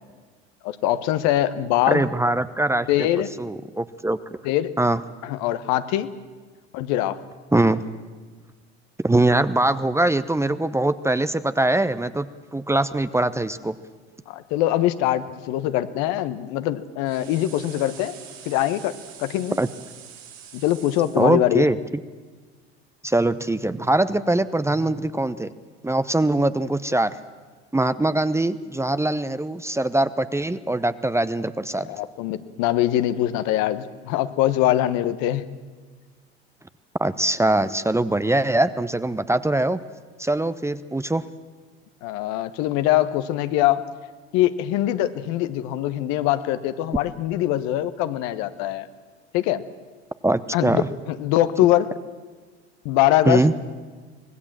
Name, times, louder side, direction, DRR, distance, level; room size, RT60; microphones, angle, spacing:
voice 1, 0.6-2.1 2.9-3.3 4.4-4.7 5.2-6.1 6.7-7.2 14.3-18.1 18.4-18.9 19.2-19.6 20.5-21.7 31.8-35.4 42.0-43.8 44.3-48.9 49.3-49.6 50.5-51.9 52.8-53.4, left 13 dB, 60° left, 12 dB, 1.3 m, -23 dB
voice 2, 1.9-2.9 3.4-4.2 4.8-5.0 7.5-7.8 9.0-12.3 12.5-13.7 19.6-19.7 21.2-21.8 23.0-25.5 25.8-27.1 27.7-31.9 37.0-39.8 40.2-41.2 50.2-50.9 53.3-53.5, right 2 dB, 10° right, 13 dB, 0.9 m, -22 dB
sound 1, 17.1-21.2, right 9 dB, 80° right, 7.5 m, -44 dB
25.0 x 19.5 x 7.5 m, 1.4 s
hypercardioid pair, 70°, 32 cm